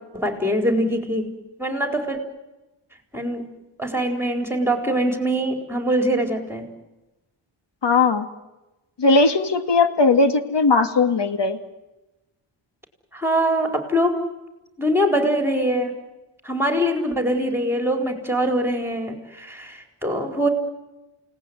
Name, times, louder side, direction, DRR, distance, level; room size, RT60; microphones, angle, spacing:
voice 1, 0.1-1.3 1.6-2.2 3.1-6.7 13.1-14.2 14.8-16.0 16.4-20.5, equal, 5° right, 5 dB, 4.4 m, -23 dB
voice 2, 7.8-8.3 9.0-11.6, left 3 dB, 55° left, 9 dB, 2.3 m, -18 dB
29.0 x 18.5 x 9.6 m, 1.1 s
cardioid pair, 85°, 49 cm